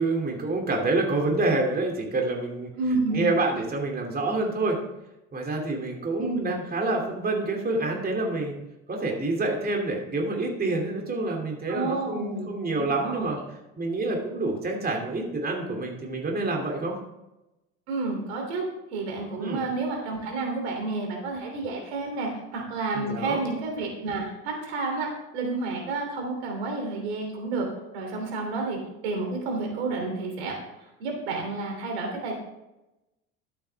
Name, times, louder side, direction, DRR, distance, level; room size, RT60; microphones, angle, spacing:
voice 1, 0.0-2.7 3.1-4.8 5.3-8.5 8.9-13.4 13.8-17.0 19.4-19.6 22.9-23.4, right 2 dB, 30° right, 1 dB, 2.7 m, -27 dB
voice 2, 2.8-3.3 6.2-6.5 11.7-12.5 12.8-13.3 17.9-27.7 27.9-32.3, right 3 dB, 85° right, 2 dB, 3.2 m, -30 dB
12.5 x 8.4 x 3.5 m, 0.93 s
hypercardioid pair, 80°, 32 cm